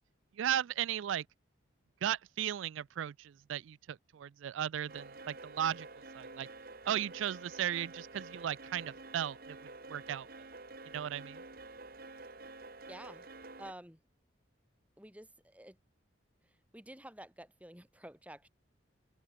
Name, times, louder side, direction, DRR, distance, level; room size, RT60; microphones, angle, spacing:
voice 1, 0.4-1.2 2.0-5.9 6.1-6.5 6.9-9.6 9.9-10.3 10.9-11.4, right 10 dB, 85° right, 0.3 m, -36 dB
sound 1, 4.9-13.7, right 2 dB, 50° right, 2.3 m, -49 dB
voice 2, 12.9-13.3 13.6-14.0 15.0-15.8 16.4-18.5, right 1 dB, 5° right, 4.9 m, -51 dB
open air
head